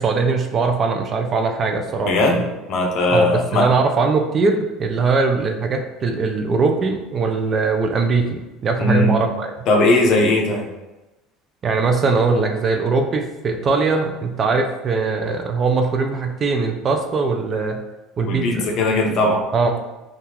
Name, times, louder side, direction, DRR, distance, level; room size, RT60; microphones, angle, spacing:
voice 1, 0.0-2.4 3.1-9.5 11.6-17.8 18.2-18.7 19.5-19.8, right 4 dB, 30° right, 5 dB, 0.4 m, -21 dB
voice 2, 2.1-2.4 2.7-3.7 8.8-9.2 9.7-10.6 18.3-19.4, left 2 dB, 50° left, 1 dB, 0.6 m, -18 dB
3.6 x 2.4 x 2.9 m, 1.1 s
cardioid pair, 130°, 0 cm